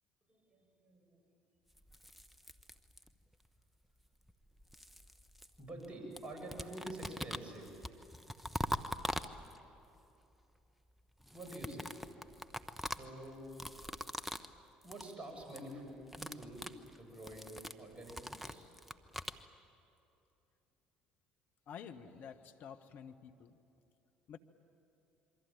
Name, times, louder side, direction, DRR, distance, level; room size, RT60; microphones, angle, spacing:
voice 1, 0.3-1.2 5.6-8.1 8.7-8.9 11.3-11.9 12.5-13.5 13.9-14.1 14.8-18.7, right 1 dB, 30° right, 2 dB, 8.0 m, -48 dB
sound 1, 1.8-3.3 4.3-5.9 6.2-9.8 11.2-14.6 14.8-15.1 15.4-15.7 16.0-19.4, equal, ahead, 1.2 m, -43 dB
voice 2, 21.7-23.6 24.3-24.4, left 7 dB, 50° left, 7 dB, 1.4 m, -50 dB
27.5 x 24.0 x 9.1 m, 2.8 s
figure-of-eight pair, 55°, 4 cm